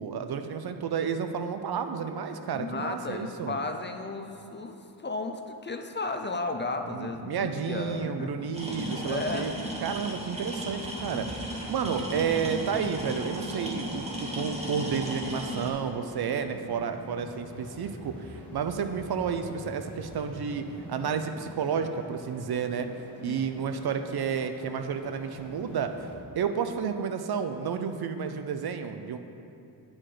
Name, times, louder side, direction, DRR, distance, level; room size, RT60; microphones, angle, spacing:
voice 1, 0.0-3.6 6.9-9.5 9.8-11.3 11.7-22.9 23.2-25.9 26.3-29.2, right 6 dB, 65° right, 8 dB, 0.6 m, -31 dB
voice 2, 2.5-8.4 9.1-9.5 23.2-23.5, left 3 dB, 30° left, 5 dB, 0.5 m, -34 dB
sound 1, 8.5-15.7, right 1 dB, 15° right, 1.2 m, -35 dB
sound 2, 10.5-26.2, left 1 dB, 5° left, 2.0 m, -46 dB
8.8 x 4.9 x 5.9 m, 2.7 s
wide cardioid pair, 125°, 40 cm